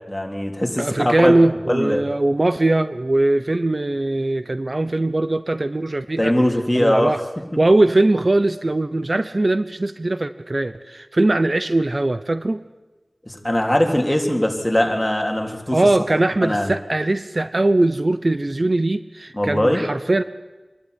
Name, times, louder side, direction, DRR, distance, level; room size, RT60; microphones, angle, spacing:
voice 1, 0.1-0.9 1.2-1.3 1.7-2.0 6.2-7.2 13.3-15.9 16.4-16.7 19.3-19.9, left 1 dB, 15° left, 2 dB, 3.6 m, -21 dB
voice 2, 0.8-6.3 6.7-7.2 7.6-12.6 15.7-20.2, right 2 dB, 50° right, 12 dB, 0.8 m, -20 dB
25.5 x 12.0 x 9.8 m, 1.2 s
wide cardioid pair, 45°, 0 cm